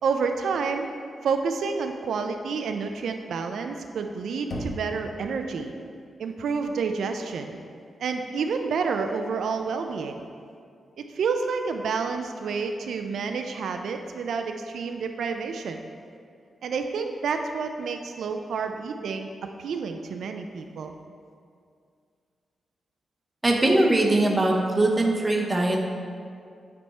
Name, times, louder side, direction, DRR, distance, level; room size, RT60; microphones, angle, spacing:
voice 1, 0.0-0.9 1.2-5.7 6.2-7.6 8.0-10.3 11.0-15.8 16.6-21.0, right 5 dB, 80° right, 6 dB, 0.3 m, -29 dB
Knock, 4.5-5.4, equal, 70° left, 0.8 m, -35 dB
voice 2, 23.4-25.8, right 2 dB, 15° right, -1 dB, 0.7 m, -21 dB
9.1 x 3.4 x 4.2 m, 2.3 s
wide cardioid pair, 155°, 0 cm